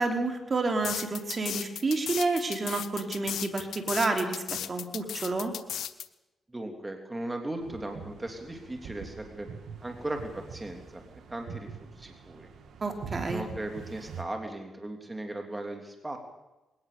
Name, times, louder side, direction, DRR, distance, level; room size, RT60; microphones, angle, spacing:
voice 1, 0.0-5.5 12.8-13.4, right 3 dB, 40° right, 4 dB, 3.5 m, -29 dB
sound 1, 0.8-6.1, left 10 dB, 80° left, 1.0 m, -35 dB
voice 2, 6.5-9.5 9.8-11.0 11.3-12.5 13.3-16.2, right 1 dB, 20° right, 4 dB, 3.1 m, -37 dB
sound 2, 7.6-14.2, right 5 dB, 75° right, 2.1 m, -44 dB
21.0 x 18.0 x 6.8 m, 1.0 s
cardioid pair, 75°, 0 cm